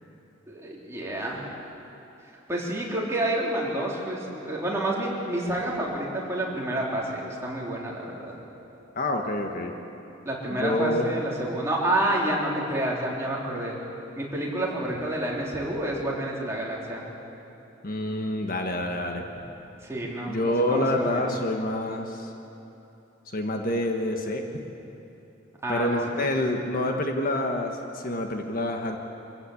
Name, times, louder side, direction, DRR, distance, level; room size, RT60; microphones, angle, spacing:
voice 1, 0.5-1.5 2.5-8.3 10.3-13.8 14.2-17.0 19.8-21.3 25.6-26.3, right 1 dB, 15° right, -4 dB, 3.7 m, -29 dB
voice 2, 8.9-9.7 10.5-11.1 17.8-19.2 20.3-22.3 23.3-24.6 25.7-29.0, left 1 dB, 45° left, 3 dB, 1.5 m, -27 dB
25.0 x 15.0 x 8.6 m, 2.9 s
head